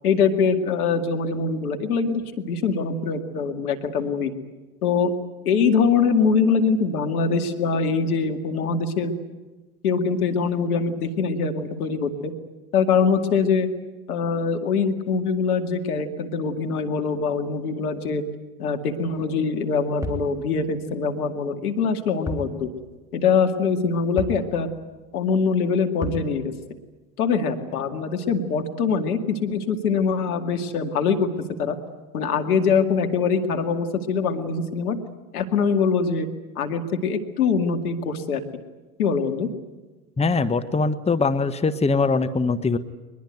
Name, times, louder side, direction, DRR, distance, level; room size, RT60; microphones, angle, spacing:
voice 1, 0.0-4.3 4.8-5.1 5.4-9.1 9.8-12.3 12.7-13.7 14.1-18.2 18.6-22.7 23.1-24.7 25.1-26.5 27.2-31.3 31.6-31.8 32.1-35.0 35.3-36.3 36.6-38.4 39.0-39.5, left 5 dB, 80° left, 6 dB, 2.3 m, -23 dB
sound 1, 20.0-20.3 22.3-22.5 22.8-22.9 24.2-24.5 26.0-26.3, left 1 dB, 5° right, 3.7 m, -31 dB
voice 2, 40.2-42.8, left 4 dB, 15° left, 11 dB, 1.2 m, -22 dB
22.5 x 21.0 x 9.3 m, 1.2 s
hypercardioid pair, 70°, 44 cm